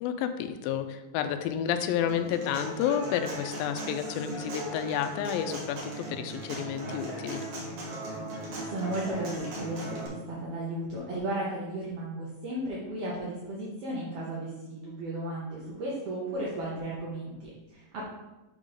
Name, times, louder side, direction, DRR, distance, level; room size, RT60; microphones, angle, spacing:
voice 1, 0.0-7.4, left 9 dB, 90° left, 8 dB, 2.3 m, -30 dB
Human voice / Acoustic guitar, 2.1-10.1, right 1 dB, 55° right, 1.9 m, -38 dB
voice 2, 8.6-18.1, right 1 dB, 70° right, -6 dB, 1.4 m, -35 dB
6.2 x 3.7 x 5.0 m, 1.1 s
omnidirectional pair, 4.0 m